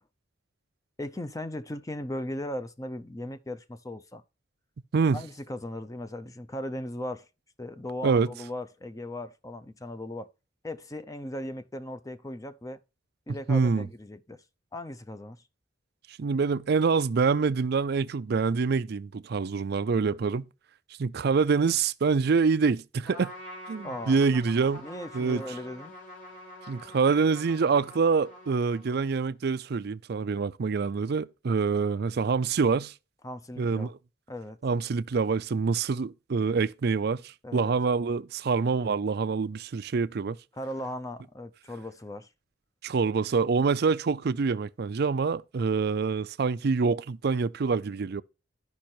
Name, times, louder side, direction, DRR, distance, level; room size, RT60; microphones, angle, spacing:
voice 1, 1.0-4.2 5.1-7.3 7.6-10.3 10.6-12.8 13.3-14.4 14.7-15.4 23.8-24.2 24.8-25.9 33.2-33.9 34.3-34.6 37.4-37.7 40.5-42.3, left 1 dB, 20° left, 0.6 m, -37 dB
voice 2, 13.3-13.9 16.1-20.5 21.0-23.3 23.7-24.9 25.1-25.4 26.7-32.9 33.6-33.9 34.6-40.4 42.8-48.2, right 5 dB, 60° right, 0.4 m, -26 dB
Trumpet, 23.0-29.2, left 1 dB, 45° left, 5.8 m, -46 dB
12.0 x 5.5 x 4.4 m
head